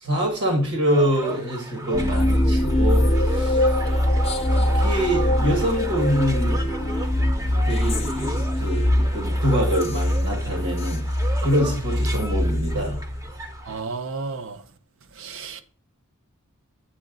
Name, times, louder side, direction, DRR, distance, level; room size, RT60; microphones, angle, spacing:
voice 1, 0.0-3.7 4.6-6.7 7.5-11.0 11.4-13.0, equal, 80° right, 1.7 m, -25 dB
sound 1, 0.8-13.8, right 2 dB, 15° right, 0.6 m, -36 dB
sound 2, 1.9-13.5, left 1 dB, 25° left, 0.6 m, -22 dB
voice 2, 13.7-14.6 15.2-15.6, right 4 dB, 60° right, 0.6 m, -32 dB
7.7 x 3.8 x 3.9 m
head